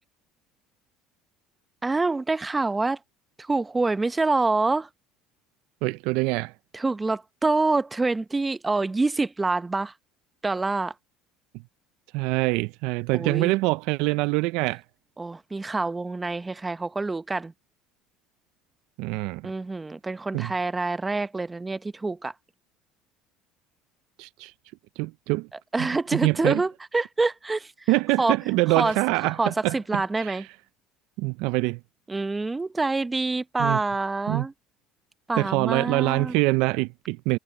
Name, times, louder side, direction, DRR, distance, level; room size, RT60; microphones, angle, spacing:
voice 1, 1.8-3.0 3.4-4.9 6.7-9.9 10.4-10.9 13.1-13.5 15.2-17.5 19.4-22.3 25.7-27.7 28.2-28.4 28.8-29.0 29.4-30.4 32.1-34.5 35.3-36.3, right 3 dB, 15° right, 0.8 m, -26 dB
voice 2, 5.8-6.5 12.1-14.8 19.0-19.5 20.3-20.5 24.2-24.5 25.0-25.5 25.8-26.6 27.9-30.4 31.2-31.8 33.6-33.8 34.3-34.5 35.4-37.4, right 22 dB, 75° right, 0.4 m, -25 dB
supercardioid pair, 100°, 0 cm